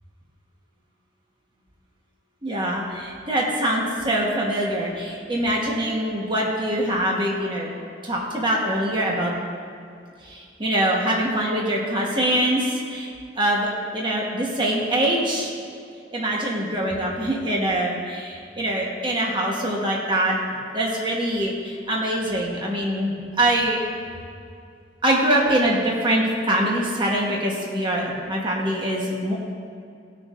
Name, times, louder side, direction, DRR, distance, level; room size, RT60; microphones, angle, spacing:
voice 1, 2.4-7.7 8.0-9.3 10.2-13.1 13.4-13.7 13.9-15.5 16.1-20.3 20.7-23.8 25.0-29.3, right 1 dB, 25° right, -3 dB, 1.2 m, -24 dB
19.0 x 6.5 x 2.5 m, 2.4 s
head